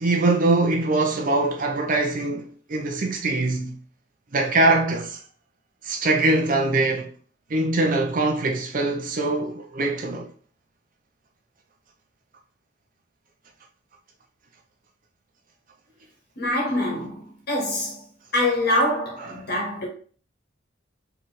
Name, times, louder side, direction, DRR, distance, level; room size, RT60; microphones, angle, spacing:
voice 1, 0.0-3.8 4.3-5.2 5.8-7.1 7.5-10.3, right 2 dB, 45° right, 0.6 m, -22 dB
voice 2, 16.4-18.0 18.3-19.9, left 1 dB, 55° left, 1.6 m, -25 dB
4.6 x 3.2 x 3.5 m
head